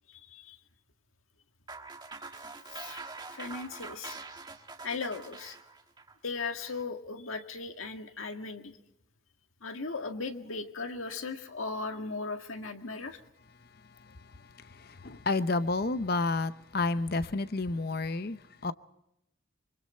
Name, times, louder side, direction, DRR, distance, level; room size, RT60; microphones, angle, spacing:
sound 1, 1.7-6.8, right 3 dB, 20° right, 1.5 m, -45 dB
voice 1, 3.3-4.2 4.8-5.6 6.2-8.8 9.6-13.2, left 4 dB, 90° left, 1.9 m, -37 dB
voice 2, 14.0-18.7, left 3 dB, 50° left, 0.7 m, -31 dB
26.0 x 24.5 x 4.4 m
head